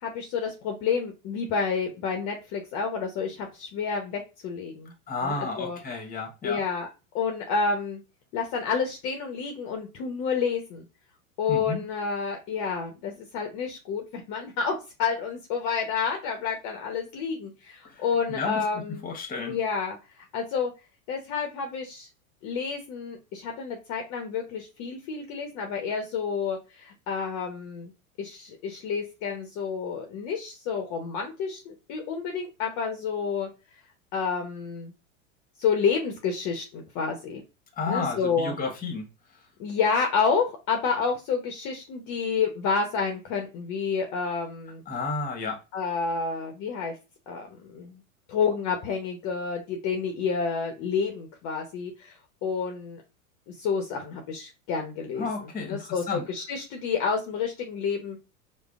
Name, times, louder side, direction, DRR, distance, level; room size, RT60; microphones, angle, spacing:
voice 1, 0.0-4.9 5.2-5.8 6.4-6.9 7.1-8.0 8.3-10.8 11.4-19.0 19.5-20.0 20.3-20.7 21.1-22.1 22.4-27.9 28.2-33.5 34.1-34.9 35.6-37.4 37.9-38.5 39.6-44.8 45.7-46.9 47.3-48.0 48.3-52.1 52.4-53.0 53.6-58.2, left 5 dB, 40° left, 3 dB, 0.8 m, -29 dB
voice 2, 5.1-6.6 11.5-11.8 17.8-18.6 19.0-19.6 37.8-39.0 44.9-45.6 55.2-56.2, left 3 dB, 20° left, 4 dB, 1.1 m, -32 dB
4.9 x 2.1 x 2.4 m, 0.29 s
hypercardioid pair, 95°, 42 cm